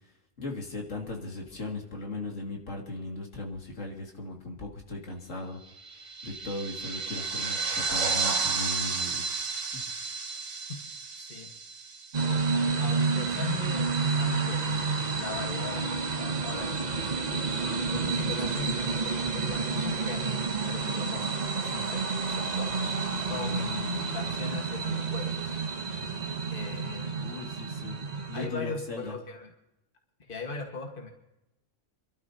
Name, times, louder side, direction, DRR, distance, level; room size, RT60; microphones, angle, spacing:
voice 1, 0.4-5.6 6.2-9.2 9.7-9.8 27.2-28.0 28.3-29.1, left 2 dB, 75° left, 0 dB, 2.6 m, -37 dB
sound 1, 5.8-12.6, right 4 dB, 70° right, 1.6 m, -32 dB
voice 2, 11.2-11.5 12.8-14.9 15.1-17.4 17.9-20.4 20.6-21.3 21.6-22.0 22.3-22.7 23.3-25.6 26.5-27.3 28.3-29.5 30.2-31.1, left 4 dB, 45° left, 2 dB, 1.8 m, -39 dB
sound 2, 12.1-28.5, right 4 dB, 35° right, 1.0 m, -30 dB
28.0 x 12.5 x 2.8 m, 0.88 s
omnidirectional pair, 1.3 m